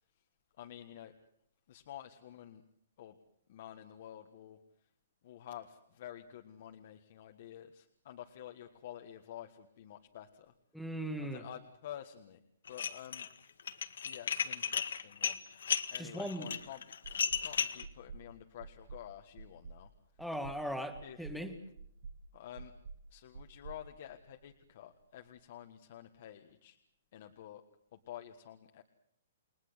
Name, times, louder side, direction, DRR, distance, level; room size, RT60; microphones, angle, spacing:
voice 1, 0.6-1.1 1.7-2.6 3.0-3.2 3.5-4.6 5.2-10.5 11.2-12.4 12.7-13.3 14.0-15.4 15.9-16.9 17.4-19.9 21.0-21.2 22.3-22.7 23.1-26.8 27.1-27.6 27.9-28.8, left 11 dB, 40° left, 5 dB, 1.5 m, -50 dB
voice 2, 10.7-11.4 16.0-16.5 20.2-21.5, equal, ahead, 6 dB, 1.7 m, -39 dB
Dishes pots and pans, 12.7-13.3 13.6-17.8, left 7 dB, 75° left, 1.9 m, -34 dB
sound 1, 16.6-16.7 17.0-17.5 17.8-18.3 18.6-19.1 19.4-19.8 20.2-20.6 20.9-21.4 21.8-22.2 22.6-23.0 23.3-24.5, right 5 dB, 75° right, 2.0 m, -48 dB
29.5 x 21.0 x 8.1 m, 0.73 s
hypercardioid pair, 170°, 0 cm